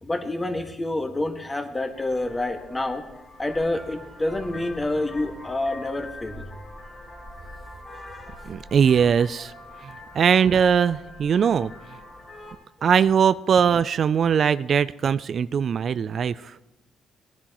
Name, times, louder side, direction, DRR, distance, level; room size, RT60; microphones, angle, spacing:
voice 1, 0.0-3.0 3.4-6.5, left 2 dB, 20° left, 4 dB, 1.7 m, -28 dB
Vehicle horn car horn honking, 1.9-12.5, left 1 dB, 45° left, 3.6 m, -43 dB
voice 2, 8.5-9.5 9.8-11.7 12.8-16.6, right 7 dB, 55° right, 15 dB, 0.3 m, -21 dB
18.0 x 10.0 x 3.0 m, 0.99 s
cardioid pair, 80°, 0 cm